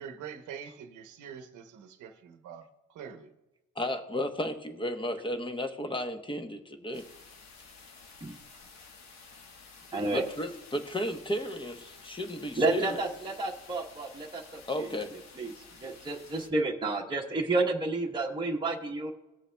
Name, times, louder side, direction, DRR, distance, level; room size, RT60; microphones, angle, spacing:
voice 1, 0.0-2.6 2.9-3.3, right 7 dB, 80° right, 0.9 m, -44 dB
voice 2, 3.8-7.0 10.1-13.0 14.7-15.1, left 1 dB, 15° left, 1.0 m, -33 dB
sound 1, 6.9-16.5, left 4 dB, 65° left, 1.2 m, -52 dB
voice 3, 9.9-10.2 12.6-15.0 15.4-15.5 15.8-19.1, right 2 dB, 15° right, 1.1 m, -30 dB
17.0 x 7.0 x 2.3 m
cardioid pair, 90°, 30 cm